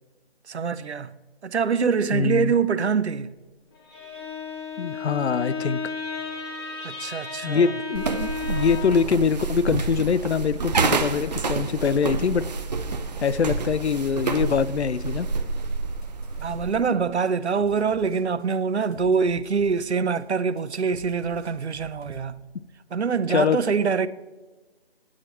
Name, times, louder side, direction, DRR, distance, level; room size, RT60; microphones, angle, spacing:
voice 1, 0.5-1.1 1.4-3.3 6.8-7.7 16.4-22.4 22.9-24.1, right 5 dB, 90° right, 0.6 m, -24 dB
voice 2, 2.1-2.5 4.8-5.8 7.4-12.4 13.2-15.3 23.3-23.6, left 6 dB, 85° left, 0.6 m, -23 dB
Bowed string instrument, 3.7-9.1, left 4 dB, 25° left, 1.7 m, -33 dB
sound 1, 7.9-16.9, right 4 dB, 40° right, 0.6 m, -28 dB
sound 2, 15.6-16.9 17.2-22.2, left 1 dB, 50° left, 1.9 m, -47 dB
9.1 x 8.8 x 4.2 m
figure-of-eight pair, 155°, 32 cm